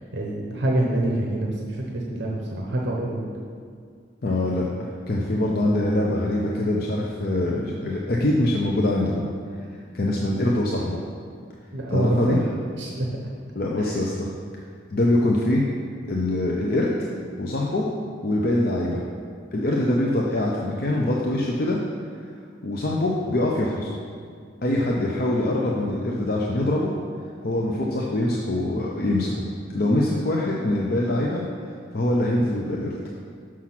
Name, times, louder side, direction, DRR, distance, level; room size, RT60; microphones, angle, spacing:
voice 1, 0.1-3.3 11.7-12.4 12.8-13.1 13.8-13.9, right 1 dB, 70° right, -1 dB, 0.9 m, -26 dB
voice 2, 4.2-9.3 9.9-11.0 11.9-12.4 13.5-14.3 14.9-15.6 16.1-17.1 17.4-17.9 18.2-19.0 19.5-21.8 22.6-24.0 24.6-26.9 27.4-29.3 29.7-31.4 31.9-32.9, left 1 dB, 50° left, -2 dB, 0.6 m, -23 dB
6.0 x 6.0 x 5.8 m, 2.2 s
head